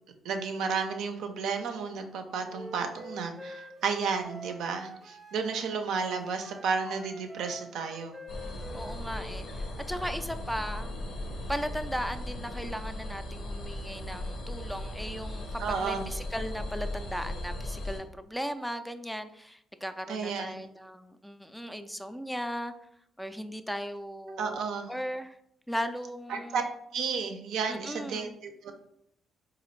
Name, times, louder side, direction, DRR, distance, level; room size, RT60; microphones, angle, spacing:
voice 1, 0.2-8.2 15.6-16.1 20.1-20.5 24.4-24.9 26.3-26.6 26.9-28.7, right 5 dB, 75° right, 5 dB, 0.5 m, -32 dB
Wind instrument woodwind instrument, 2.5-5.7 6.0-9.4, right 1 dB, 20° right, 0.7 m, -46 dB
sound 1, 8.3-18.0, left 1 dB, 70° left, 0.7 m, -37 dB
voice 2, 8.7-10.9 11.5-22.7 23.2-24.6 24.9-25.4 25.7-26.7 27.7-28.4, equal, 5° left, 9 dB, 0.3 m, -37 dB
3.9 x 2.4 x 3.1 m, 0.76 s
supercardioid pair, 60°, 0 cm